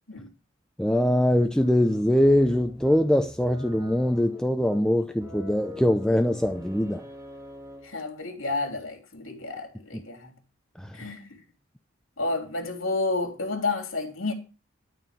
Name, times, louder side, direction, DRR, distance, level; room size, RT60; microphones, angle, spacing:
voice 1, 0.8-7.0 10.8-11.0, left 1 dB, 5° left, 0.6 m, -22 dB
sound 1, 1.6-8.1, equal, 15° right, 2.1 m, -45 dB
voice 2, 7.8-10.4 10.9-11.4 12.2-14.3, left 3 dB, 85° left, 3.1 m, -30 dB
12.5 x 4.4 x 7.3 m
head